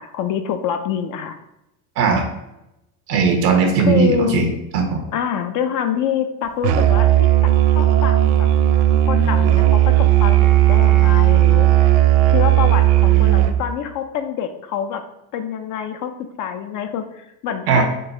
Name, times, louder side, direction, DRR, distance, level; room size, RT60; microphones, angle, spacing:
voice 1, 0.0-1.4 3.8-4.4 5.1-8.5 9.1-11.9 12.3-15.0 15.3-16.1 16.4-17.8, left 8 dB, 45° left, 7 dB, 0.5 m, -26 dB
voice 2, 3.1-4.4 4.7-5.0 17.7-17.8, right 5 dB, 90° right, 3 dB, 1.0 m, -17 dB
Musical instrument, 6.6-13.7, right 13 dB, 60° right, 0.5 m, -15 dB
3.7 x 2.3 x 4.0 m, 0.89 s
hypercardioid pair, 95°, 47 cm